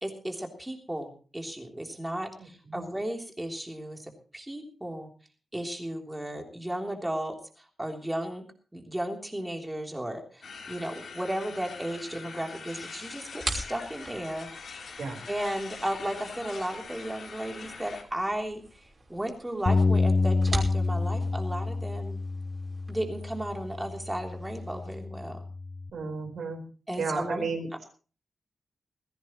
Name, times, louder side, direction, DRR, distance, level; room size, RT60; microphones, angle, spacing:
voice 1, 0.0-5.1 5.5-7.4 7.8-8.4 8.7-14.5 15.3-22.2 22.9-25.4 26.9-27.5, right 1 dB, 10° right, 2 dB, 3.4 m, -34 dB
sound 1, 10.4-18.0, left 5 dB, 70° left, 3.6 m, -43 dB
sound 2, 13.4-25.0, right 2 dB, 35° right, 5.3 m, -42 dB
Bass guitar, 19.7-25.9, left 3 dB, 35° left, 0.6 m, -28 dB
voice 2, 25.9-26.6 27.0-27.8, right 4 dB, 80° right, 4 dB, 4.5 m, -33 dB
20.0 x 16.0 x 3.1 m, 0.38 s
wide cardioid pair, 125°, 0 cm